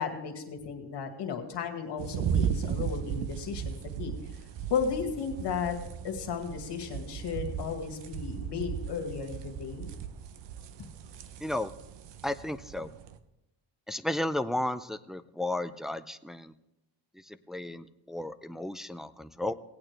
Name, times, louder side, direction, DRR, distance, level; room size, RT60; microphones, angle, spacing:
voice 1, 0.0-4.1 4.7-5.8 6.0-9.9, left 6 dB, 75° left, 4 dB, 2.0 m, -34 dB
sound 1, 2.0-13.2, right 8 dB, 85° right, 0.8 m, -36 dB
voice 2, 11.4-11.7 12.2-12.9 13.9-16.5 17.3-19.5, left 1 dB, ahead, 10 dB, 0.3 m, -33 dB
18.0 x 8.8 x 3.3 m, 0.90 s
cardioid pair, 110°, 42 cm